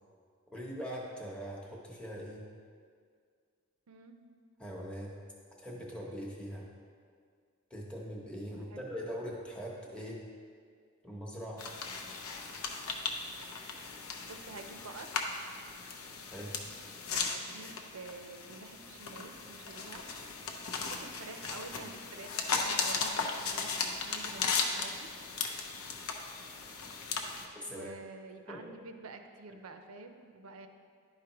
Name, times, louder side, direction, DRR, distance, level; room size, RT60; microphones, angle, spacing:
voice 1, 0.5-2.5 4.6-5.2 5.6-6.7 7.7-10.2 11.0-11.7 16.3-16.5 20.8-20.9 27.6-27.9 28.5-28.7, equal, 5° left, -4 dB, 0.8 m, -41 dB
voice 2, 3.9-4.2 8.5-8.8 14.2-15.2 17.1-20.0 20.8-25.1 27.6-30.7, right 3 dB, 90° right, 6 dB, 0.6 m, -49 dB
sound 1, 11.6-27.5, left 4 dB, 85° left, 0.7 m, -37 dB
11.0 x 4.9 x 2.9 m, 2.1 s
head